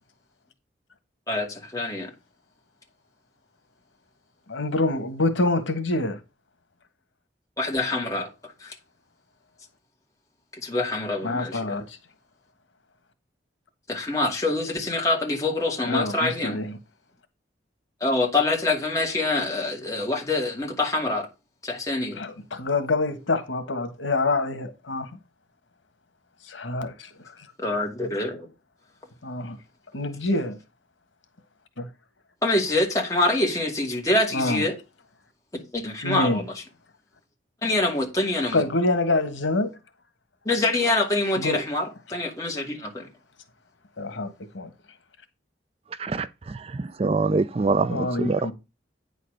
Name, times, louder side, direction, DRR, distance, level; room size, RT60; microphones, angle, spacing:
voice 1, 1.3-2.1 7.6-8.3 8.6-8.7 10.6-11.8 13.9-16.6 18.0-21.3 21.6-22.2 27.6-28.5 32.4-34.7 35.7-36.4 37.6-38.6 40.5-43.1, left 2 dB, 20° left, 2.3 m, -25 dB
voice 2, 4.5-6.2 11.2-12.0 15.9-16.8 22.1-25.1 26.4-27.1 29.2-29.6 29.9-30.6 31.8-31.9 34.3-34.6 36.0-36.5 38.5-39.7 41.4-41.6 44.0-44.7 47.9-48.5, left 2 dB, 90° left, 1.5 m, -26 dB
voice 3, 46.0-48.5, right 3 dB, 30° right, 0.4 m, -25 dB
9.3 x 4.2 x 6.5 m
head